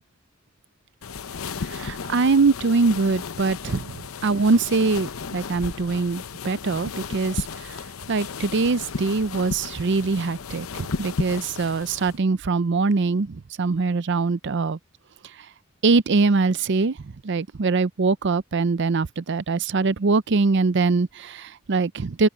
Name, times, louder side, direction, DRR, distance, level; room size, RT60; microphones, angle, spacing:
sound 1, 1.0-12.2, left 5 dB, 80° left, 0.7 m, -34 dB
voice 1, 1.7-3.9 4.2-7.5 8.1-14.8 15.8-17.0 17.2-22.3, right 4 dB, 60° right, 0.6 m, -22 dB
open air
head